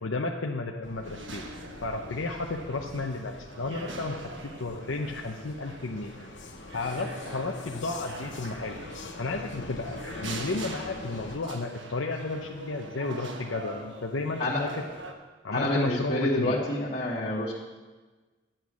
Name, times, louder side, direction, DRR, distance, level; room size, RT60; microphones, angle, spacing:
voice 1, 0.0-1.4 1.8-6.1 6.7-8.8 9.2-14.8 15.4-16.6, left 3 dB, 85° left, 1 dB, 0.8 m, -33 dB
Vehicle, 0.8-11.4, left 2 dB, 65° left, 1.1 m, -44 dB
sound 1, 1.0-15.1, right 2 dB, 70° right, 1.3 m, -43 dB
voice 2, 15.5-17.5, left 1 dB, 45° left, -7 dB, 2.0 m, -27 dB
11.5 x 8.9 x 6.3 m, 1.3 s
head